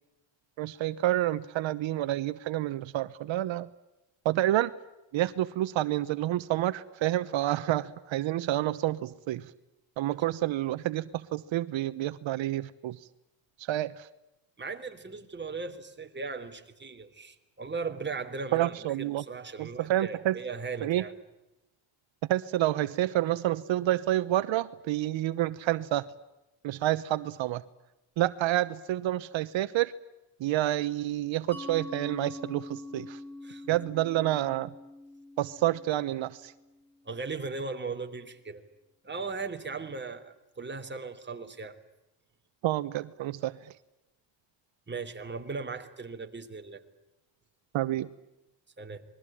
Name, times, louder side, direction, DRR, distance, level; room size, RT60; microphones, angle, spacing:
voice 1, 0.6-3.7 4.2-4.7 5.1-7.8 8.1-9.0 9.3-9.4 10.0-11.0 11.3-12.9 13.7-13.9 18.5-19.2 19.9-20.3 20.8-21.0 22.3-26.0 26.6-27.6 28.2-29.9 30.4-32.6 32.9-33.1 33.7-34.7 35.4-36.3 42.6-43.5 47.7-48.1, right 14 dB, 80° right, 1.1 m, -28 dB
voice 2, 14.6-21.1 33.4-33.7 37.0-38.6 39.0-41.8 44.9-46.8 48.8-49.0, right 4 dB, 25° right, 3.2 m, -38 dB
Mallet percussion, 31.5-36.9, left 2 dB, 5° left, 4.0 m, -44 dB
28.0 x 22.0 x 8.7 m
cardioid pair, 115°, 46 cm